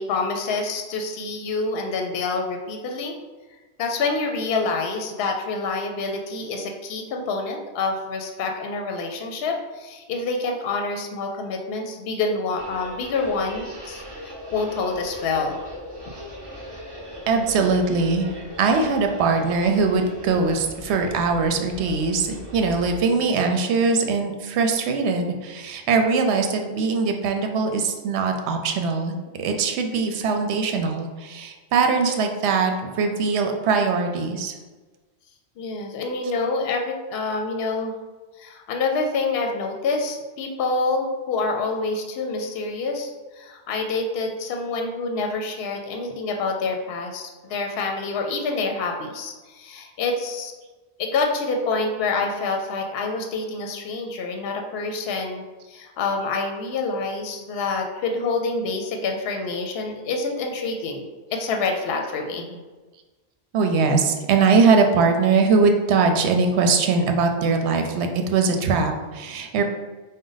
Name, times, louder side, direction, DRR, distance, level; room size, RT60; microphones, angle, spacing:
voice 1, 0.0-3.1 3.8-15.6 35.6-37.9 38.4-50.5 51.0-62.6, left 3 dB, 70° left, 3 dB, 0.7 m, -27 dB
sound 1, 12.5-23.0, equal, 25° right, 0.7 m, -39 dB
voice 2, 17.3-18.3 18.6-34.5 63.5-69.6, right 4 dB, 80° right, 4 dB, 0.8 m, -21 dB
5.0 x 2.1 x 3.9 m, 1.3 s
omnidirectional pair, 1.1 m